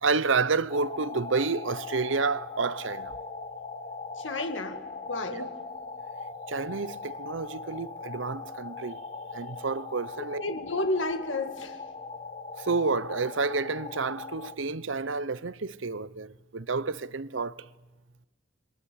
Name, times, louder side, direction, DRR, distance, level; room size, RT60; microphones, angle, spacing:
voice 1, 0.0-3.1 5.4-5.5 6.5-9.0 9.3-10.4 12.6-17.7, right 4 dB, 75° right, 0.9 m, -29 dB
sound 1, 0.7-14.5, left 4 dB, 35° left, 2.0 m, -40 dB
voice 2, 4.2-5.6 10.4-11.8, left 2 dB, 75° left, 2.3 m, -32 dB
27.5 x 22.5 x 8.5 m
head